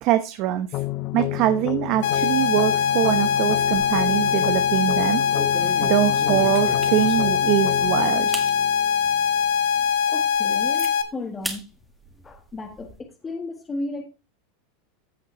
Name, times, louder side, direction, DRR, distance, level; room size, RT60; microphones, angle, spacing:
voice 1, 0.0-0.7 1.1-5.2 5.8-8.3, right 12 dB, 50° right, 0.9 m, -23 dB
sound 1, 0.7-9.7, left 17 dB, 45° left, 0.4 m, -31 dB
sound 2, 2.0-11.0, left 7 dB, 75° left, 1.4 m, -22 dB
sound 3, 3.5-4.2 4.5-4.8 5.3-7.4 7.8-7.9 8.3-8.5 9.1-9.2 9.7-9.8 10.1-10.9 11.4-11.6 12.0-12.9, equal, ahead, 1.6 m, -36 dB
voice 2, 9.8-11.6 12.2-14.1, left 2 dB, 15° left, 1.2 m, -34 dB
14.5 x 5.4 x 3.1 m
supercardioid pair, 135°, 0 cm